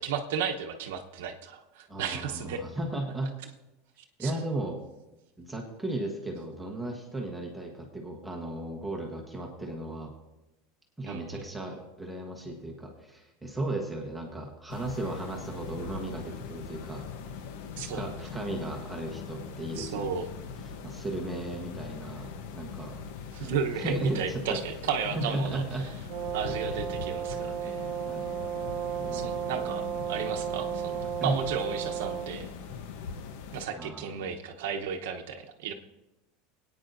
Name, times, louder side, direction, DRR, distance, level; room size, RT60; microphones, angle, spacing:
voice 1, 0.0-2.6 4.2-4.3 11.1-11.4 17.8-18.1 19.8-20.3 23.3-25.6 26.3-27.9 29.1-32.5 33.5-35.7, right 6 dB, 80° right, 4 dB, 0.9 m, -34 dB
voice 2, 1.9-3.4 4.2-4.8 5.4-10.1 11.0-17.0 17.8-20.1 20.6-23.0 23.4-24.6 25.1-25.9 26.5-26.8 28.0-28.3 29.0-29.5 31.2-31.4 33.7-34.3, right 2 dB, 5° right, -1 dB, 1.1 m, -35 dB
sound 1, 14.7-33.7, left 6 dB, 60° left, 0.9 m, -41 dB
Brass instrument, 26.1-32.3, right 11 dB, 50° right, 0.8 m, -34 dB
22.0 x 9.2 x 2.6 m, 1.0 s
supercardioid pair, 170°, 0 cm